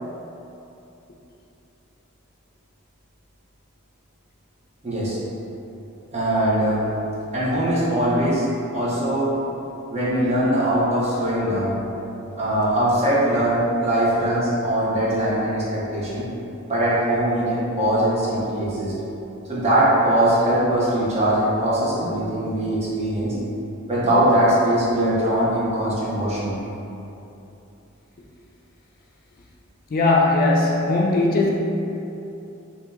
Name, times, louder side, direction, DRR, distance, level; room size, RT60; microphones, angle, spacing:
voice 1, 4.8-5.2 6.1-6.8 7.3-8.5 8.7-9.3 9.9-11.8 12.4-16.3 16.7-18.9 19.5-23.3 23.9-26.6, right 1 dB, 30° right, -8 dB, 0.8 m, -21 dB
voice 2, 29.9-31.5, left 2 dB, 45° left, -2 dB, 0.4 m, -19 dB
2.9 x 2.8 x 3.5 m, 2.9 s
head